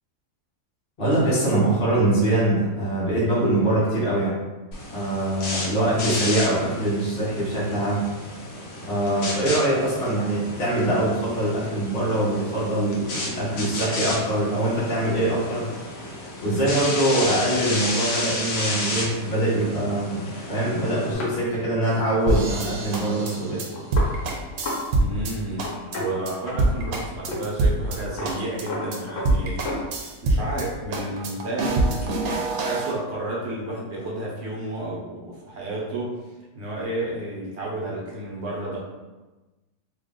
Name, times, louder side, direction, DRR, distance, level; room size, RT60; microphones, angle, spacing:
voice 1, 1.0-4.4 4.9-8.0 8.8-15.7 16.4-23.6, right 1 dB, 40° left, -8 dB, 1.1 m, -23 dB
sound 1, 4.7-21.1, left 2 dB, 70° left, 1.2 m, -32 dB
sound 2, 21.1-24.9 25.1-25.2 25.5-26.9 27.3-27.5 27.7-30.3 30.7-32.1, left 2 dB, 90° left, 1.4 m, -34 dB
sound 3, 22.3-25.3 25.6-26.0 26.3-26.4 26.6-28.0 28.2-28.6 28.9-29.0 29.2-30.6 30.9-32.9, right 2 dB, 85° right, 1.1 m, -24 dB
voice 2, 25.0-25.7 25.9-29.8 30.2-36.2 36.5-38.8, right 1 dB, 50° right, -4 dB, 1.1 m, -31 dB
3.0 x 2.6 x 3.6 m, 1.1 s
omnidirectional pair, 1.5 m